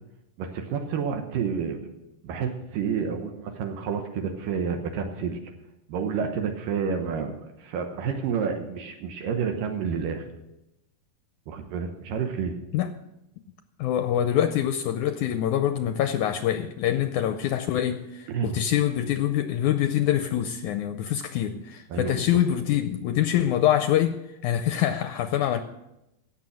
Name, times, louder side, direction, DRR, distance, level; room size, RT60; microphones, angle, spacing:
voice 1, 0.4-1.9 2.2-5.4 5.9-10.3 11.5-12.6 18.3-18.5 21.9-22.2, right 6 dB, 80° right, 2.7 m, -29 dB
voice 2, 13.8-25.6, left 11 dB, 80° left, 1.8 m, -25 dB
17.0 x 7.2 x 6.3 m
omnidirectional pair, 4.0 m